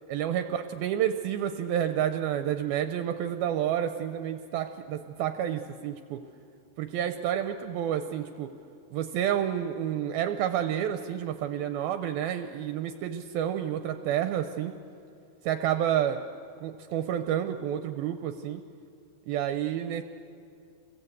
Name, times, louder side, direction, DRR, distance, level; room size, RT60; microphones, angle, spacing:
voice 1, 0.1-6.2 6.8-8.5 8.9-14.7 15.5-16.2 16.6-18.6 19.3-20.0, right 10 dB, 80° right, 8 dB, 2.5 m, -29 dB
29.0 x 22.5 x 8.1 m, 2.3 s
omnidirectional pair, 4.6 m